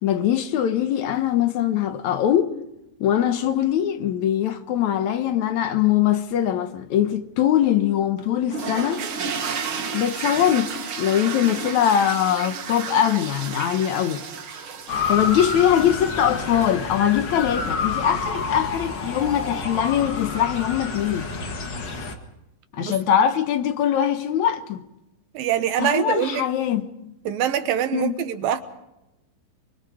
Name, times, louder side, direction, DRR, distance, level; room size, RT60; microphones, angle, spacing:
voice 1, 0.0-2.5 3.0-9.0 9.9-10.7 11.0-14.3 15.1-21.3 22.7-24.8 25.8-27.1 27.9-28.1, left 10 dB, 65° left, 2.0 m, -22 dB
sound 1, 8.5-17.0, right 6 dB, 50° right, 1.6 m, -32 dB
Motor vehicle (road) / Siren, 14.9-22.2, left 4 dB, 40° left, 1.8 m, -29 dB
voice 2, 25.3-26.5 27.3-28.6, right 10 dB, 80° right, 3.0 m, -24 dB
24.0 x 24.0 x 5.0 m
omnidirectional pair, 4.1 m